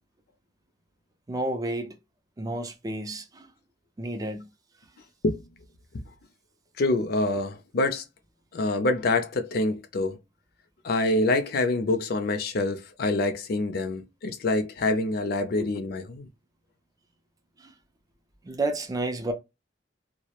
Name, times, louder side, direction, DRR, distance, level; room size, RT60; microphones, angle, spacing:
voice 1, 1.3-2.0 2.4-3.5 4.0-4.5 15.6-15.7 17.6-17.7 18.4-19.3, right 2 dB, 20° right, 0.4 m, -31 dB
voice 2, 6.8-8.0 8.5-10.2 10.8-16.3, left 2 dB, 55° left, 0.4 m, -26 dB
2.2 x 2.0 x 2.8 m
head